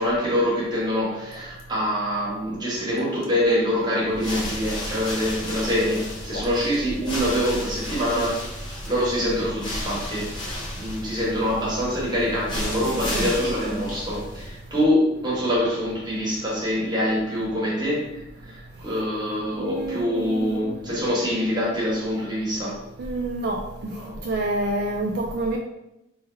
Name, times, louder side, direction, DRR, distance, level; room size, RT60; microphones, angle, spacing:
voice 1, 0.0-8.4 8.9-18.1 18.4-22.8 23.9-24.2, equal, 25° right, -6 dB, 1.3 m, -25 dB
sound 1, 1.3-1.6 2.8-3.3 4.2-4.6 5.5-5.7 6.1-6.5, left 3 dB, 60° left, 0.7 m, -40 dB
sound 2, 4.0-14.7, left 1 dB, 25° left, 0.8 m, -33 dB
voice 2, 12.9-13.3 19.6-20.6 23.0-23.6 24.2-25.6, right 2 dB, 60° right, 1 dB, 0.4 m, -27 dB
3.3 x 2.2 x 4.3 m, 0.87 s
head